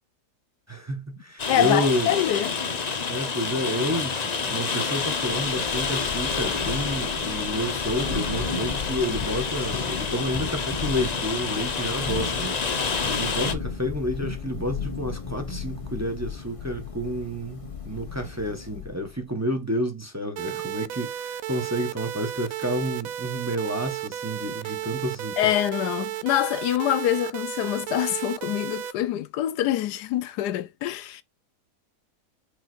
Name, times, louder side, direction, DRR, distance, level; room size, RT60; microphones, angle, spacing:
voice 1, 0.7-2.1 3.1-25.4, equal, 10° right, 1.4 m, -30 dB
Rain, 1.4-13.5, left 5 dB, 40° left, 0.6 m, -28 dB
voice 2, 1.5-2.6 25.4-31.2, left 13 dB, 85° left, 1.2 m, -25 dB
Thunder / Rain, 5.2-19.2, left 5 dB, 25° left, 0.9 m, -35 dB
sound 1, 20.4-28.9, right 11 dB, 70° right, 0.9 m, -33 dB
5.7 x 4.1 x 4.5 m
omnidirectional pair, 1.7 m